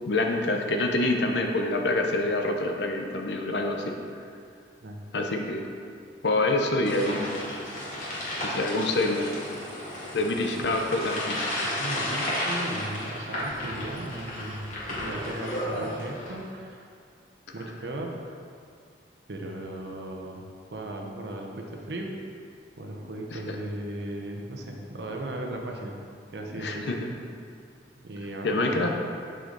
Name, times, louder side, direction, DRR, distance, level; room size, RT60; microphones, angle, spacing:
voice 1, 0.0-4.0 5.1-5.7 6.2-7.4 8.4-9.3 10.1-11.4 23.3-23.6 26.5-27.0 28.4-28.9, left 2 dB, 75° left, 3 dB, 0.7 m, -26 dB
sound 1, 6.8-16.4, left 1 dB, 45° left, 1.9 m, -33 dB
voice 2, 11.6-16.9 17.5-18.4 19.3-20.4 20.7-22.2 22.8-26.0 26.3-26.9 28.0-28.9, right 1 dB, 70° right, 1 dB, 0.9 m, -36 dB
6.7 x 6.4 x 3.9 m, 2.3 s
head